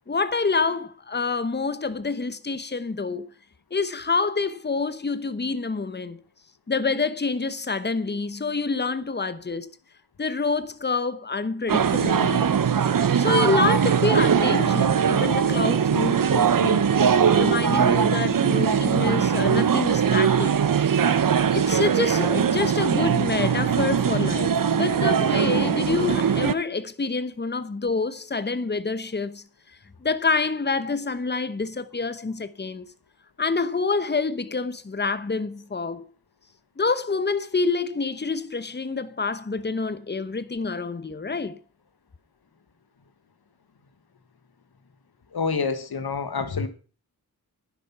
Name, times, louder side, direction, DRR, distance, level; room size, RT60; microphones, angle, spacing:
voice 1, 0.1-3.3 3.7-6.2 6.7-9.7 10.2-12.6 13.2-16.9 17.4-20.5 21.5-29.4 30.0-32.9 33.4-36.1 36.8-41.6, left 4 dB, 25° left, 1.0 m, -27 dB
sound 1, 11.7-26.5, right 7 dB, 60° right, 0.9 m, -21 dB
voice 2, 45.3-46.7, left 5 dB, 75° left, 1.8 m, -27 dB
11.5 x 10.0 x 5.9 m
wide cardioid pair, 85°, 38 cm